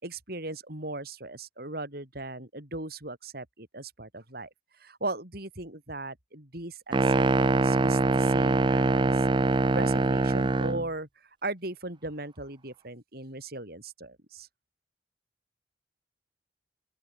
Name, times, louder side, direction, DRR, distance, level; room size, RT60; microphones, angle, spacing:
voice 1, 0.0-4.5 4.8-9.3 9.7-14.5, right 2 dB, 60° right, 7.9 m, -38 dB
sound 1, 6.9-10.9, right 2 dB, 30° right, 0.5 m, -23 dB
open air
head